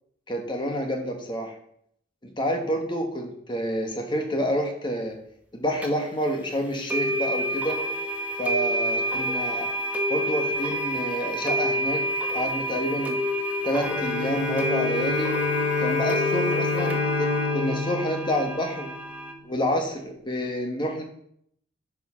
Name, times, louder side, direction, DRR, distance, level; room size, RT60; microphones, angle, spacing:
voice 1, 0.3-1.5 2.2-5.2 5.5-7.8 8.4-9.7 10.1-12.0 12.3-13.2 13.6-15.3 15.8-18.9 19.4-21.0, equal, 25° left, 3 dB, 1.4 m, -28 dB
sound 1, 5.8-5.9 6.9-19.3, equal, 10° right, 1.1 m, -28 dB
Bowed string instrument, 13.7-19.1, left 4 dB, 65° left, 1.6 m, -28 dB
10.5 x 5.0 x 5.7 m, 0.69 s
head